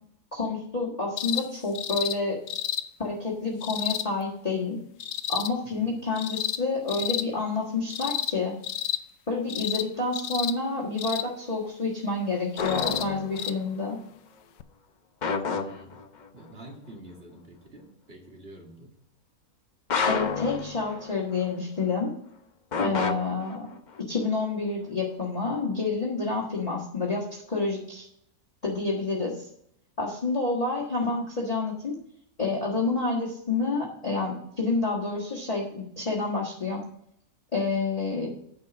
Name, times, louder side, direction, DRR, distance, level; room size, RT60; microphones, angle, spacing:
voice 1, 0.3-2.4 3.0-4.8 5.3-8.5 9.3-14.0 20.1-22.1 22.8-23.7 24.1-28.0 28.6-29.5 30.0-31.9 32.4-36.8 37.5-38.3, left 3 dB, 25° left, -3 dB, 1.6 m, -29 dB
sound 1, 1.2-1.5 1.8-2.2 2.5-2.8 3.6-4.1 5.0-5.5 6.2-6.6 6.9-7.3 7.9-8.4 8.6-9.0 9.5-9.9 10.1-10.5 11.0-11.3 12.6-13.1 13.4-13.5 14.6-14.7, left 11 dB, 70° left, 1.0 m, -30 dB
voice 2, 5.6-5.9 15.5-16.0 16.3-18.9 22.8-23.1, right 1 dB, 40° right, 1 dB, 2.1 m, -47 dB
sound 2, 12.6-13.6 15.2-16.3 19.9-21.4 22.7-24.0, left 5 dB, 45° left, 0.6 m, -30 dB
9.5 x 5.4 x 5.9 m, 0.71 s
omnidirectional pair, 1.5 m